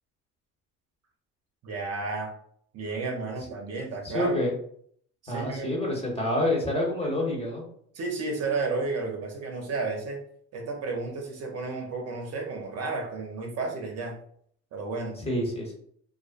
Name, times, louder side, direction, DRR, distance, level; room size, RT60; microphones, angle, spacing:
voice 1, 1.6-2.3 2.7-4.3 5.2-5.7 7.9-10.2 10.5-14.2 14.7-15.2, right 3 dB, 50° right, 1 dB, 0.7 m, -32 dB
voice 2, 4.0-4.5 5.3-7.6 15.2-15.8, left 1 dB, 15° left, -2 dB, 1.0 m, -27 dB
2.4 x 2.2 x 2.5 m, 0.63 s
supercardioid pair, 80°, 33 cm